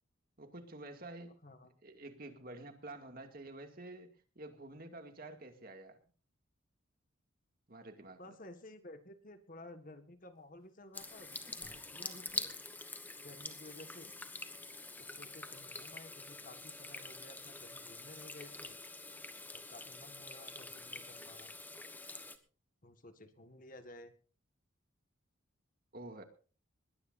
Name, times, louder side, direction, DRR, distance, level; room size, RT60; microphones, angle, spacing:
voice 1, 0.4-1.4 1.8-6.0 7.7-8.4 25.9-26.2, right 2 dB, 45° right, 5 dB, 2.4 m, -49 dB
voice 2, 8.2-11.4 11.7-12.5 13.2-14.1 15.0-18.8 19.5-21.5 22.8-24.1, left 1 dB, 40° left, 8 dB, 1.7 m, -54 dB
sound 1, 10.4-13.0, left 1 dB, 80° left, 4.3 m, -66 dB
Water tap faucet / Sink (filling or washing), 10.9-22.4, left 2 dB, 10° left, 1.2 m, -46 dB
21.5 x 17.5 x 2.7 m, 0.39 s
head